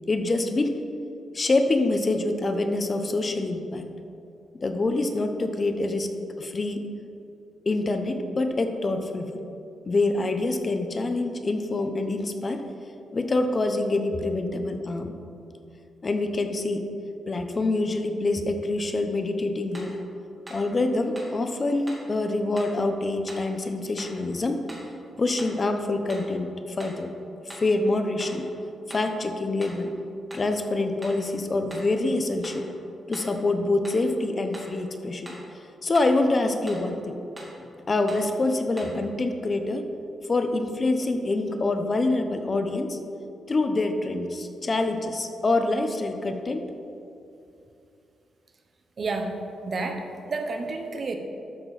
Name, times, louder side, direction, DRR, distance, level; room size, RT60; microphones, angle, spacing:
voice 1, 0.1-0.8 1.3-3.9 4.6-6.1 6.4-6.8 7.7-9.4 9.9-12.6 13.1-15.1 16.0-16.8 17.3-19.9 20.5-24.6 25.2-27.1 27.6-28.5 28.9-29.9 30.3-32.7 33.1-35.3 35.8-37.2 37.9-39.9 40.3-43.0 43.5-46.6, left 2 dB, 30° left, 6 dB, 0.8 m, -26 dB
sound 1, 19.7-20.0 20.5-20.7 21.2-21.4 21.9-22.1 22.6-22.8 23.3-23.5 24.0-24.2 24.7-24.9 25.4-25.6 26.1-26.3 26.8-27.0 27.5-27.7 28.2-28.5 28.9-29.1 29.6-29.9 30.3-30.5 31.0-31.2 31.7-31.9 32.4-32.7 33.1-33.4 33.8-34.1 34.5-34.8 35.2-35.5 35.9-36.2 36.6-36.9 37.4-37.6 38.1-38.3 38.8-39.0, right 1 dB, 20° right, 2.5 m, -43 dB
voice 2, 49.0-49.4 49.6-51.2, right 3 dB, 40° right, 5 dB, 0.9 m, -30 dB
12.5 x 6.8 x 4.2 m, 2.6 s
cardioid pair, 115°, 0 cm